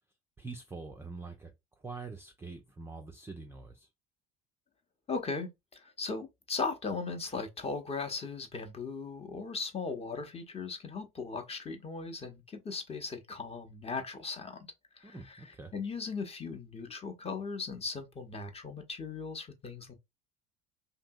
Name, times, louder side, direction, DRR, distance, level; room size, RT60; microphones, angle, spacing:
voice 1, 0.4-1.5 1.8-3.9 15.0-15.7, right 3 dB, 10° right, 0.3 m, -44 dB
voice 2, 5.1-14.6 15.0-19.9, left 4 dB, 20° left, 0.7 m, -38 dB
2.8 x 2.6 x 2.2 m
figure-of-eight pair, 70°, 31 cm